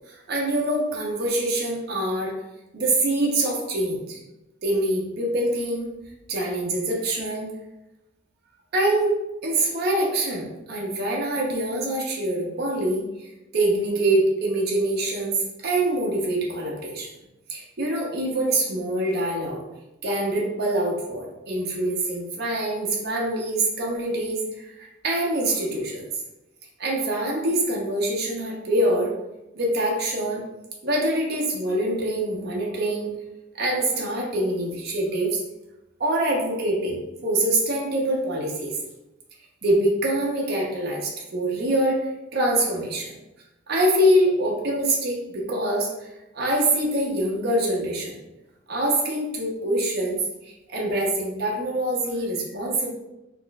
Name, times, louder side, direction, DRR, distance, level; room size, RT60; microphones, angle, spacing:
voice 1, 0.1-2.3 2.7-4.2 4.6-5.9 6.3-7.5 8.7-9.1 9.4-13.0 13.5-15.4 15.6-17.1 17.5-19.6 20.0-26.1 26.8-29.1 29.5-30.4 30.8-33.1 33.5-35.4 36.0-38.7 39.6-42.0 42.3-43.1 43.7-46.1 46.3-48.1 48.7-52.9, right 1 dB, 50° right, -2 dB, 0.7 m, -24 dB
4.1 x 2.5 x 2.2 m, 0.95 s
head